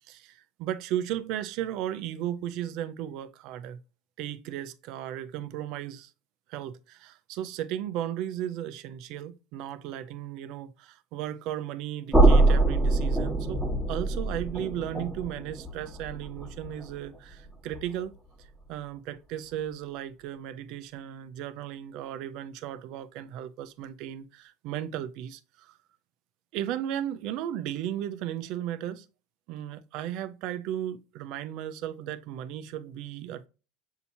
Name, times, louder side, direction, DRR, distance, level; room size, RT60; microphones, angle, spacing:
voice 1, 0.1-3.8 4.2-6.1 6.5-25.8 26.5-29.1 29.5-33.5, right 11 dB, 65° right, 0.5 m, -35 dB
sound 1, 12.1-18.0, right 2 dB, ahead, 1.3 m, -25 dB
6.8 x 2.7 x 2.7 m
supercardioid pair, 100°, 0 cm